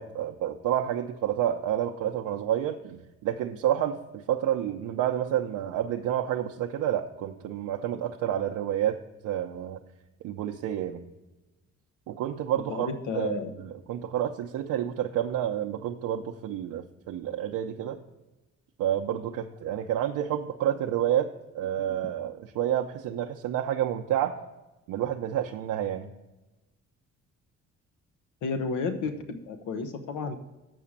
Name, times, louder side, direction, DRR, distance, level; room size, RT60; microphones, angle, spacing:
voice 1, 0.0-9.8 10.2-11.0 12.1-12.9 13.1-18.0 18.8-21.3 21.5-24.4 24.9-26.1, right 11 dB, 90° right, 2 dB, 0.6 m, -29 dB
voice 2, 12.6-13.5 28.4-30.4, left 4 dB, 80° left, 7 dB, 0.8 m, -32 dB
7.6 x 5.0 x 7.1 m, 1.0 s
cardioid pair, 90°, 30 cm